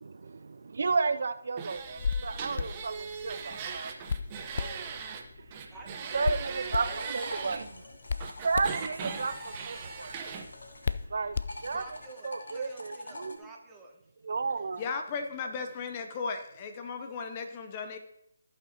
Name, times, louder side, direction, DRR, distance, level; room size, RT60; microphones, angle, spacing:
voice 1, 0.0-0.4 0.7-3.9 6.1-7.6 8.4-9.3 9.7-10.1 11.1-11.4 11.6-11.8 12.2-13.4 14.2-14.8, right 4 dB, 60° right, 10 dB, 0.4 m, -32 dB
sound 1, 1.6-5.2 5.5-7.6 8.2-10.4, right 6 dB, 25° right, 0.9 m, -39 dB
Hands, 1.8-12.0, left 5 dB, 55° left, 0.4 m, -37 dB
voice 2, 5.7-7.7 11.7-14.0, right 3 dB, 10° right, -2 dB, 1.3 m, -49 dB
sound 2, 6.4-11.0 11.3-13.4, left 1 dB, 75° left, 1.6 m, -45 dB
voice 3, 14.8-18.0, left 5 dB, 30° left, 6 dB, 0.7 m, -36 dB
16.0 x 5.6 x 2.9 m, 0.79 s
figure-of-eight pair, 150°, 0 cm